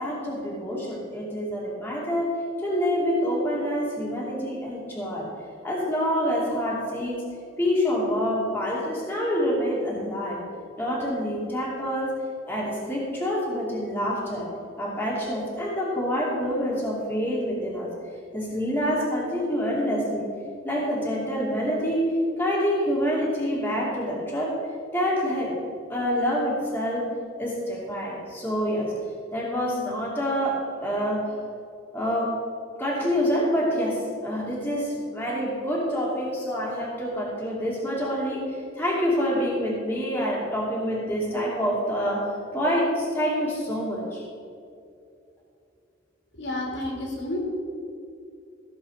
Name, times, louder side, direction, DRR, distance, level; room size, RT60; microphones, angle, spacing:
voice 1, 0.0-2.3 2.6-5.2 5.6-7.2 7.6-10.4 10.8-12.1 12.5-14.5 14.8-17.9 18.3-20.3 20.6-22.1 22.4-24.6 24.9-25.5 25.9-27.1 27.4-28.9 29.3-31.2 31.9-32.3 32.8-42.2 42.5-44.2, equal, 10° left, -6 dB, 2.5 m, -27 dB
voice 2, 46.4-47.4, left 1 dB, 65° left, -1 dB, 2.8 m, -30 dB
15.5 x 7.5 x 5.0 m, 2.5 s
head